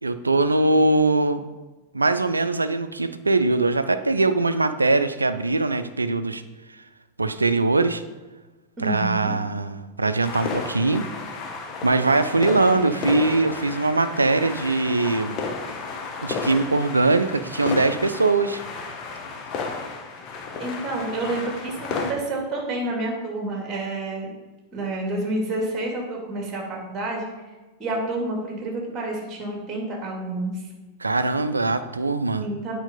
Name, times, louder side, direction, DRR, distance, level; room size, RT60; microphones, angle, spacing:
voice 1, 0.0-1.5 1.9-6.4 7.2-8.0 8.8-11.0 11.8-15.4 16.2-18.6 31.0-32.5, right 3 dB, 80° right, 11 dB, 0.4 m, -21 dB
voice 2, 8.8-9.3 20.6-24.3 24.7-27.3 27.8-30.6 32.4-32.7, right 2 dB, 25° right, 0 dB, 2.3 m, -29 dB
sound 1, 10.2-22.1, left 4 dB, 35° left, 1.2 m, -33 dB
8.9 x 4.5 x 5.1 m, 1.2 s
figure-of-eight pair, 90°, 0 cm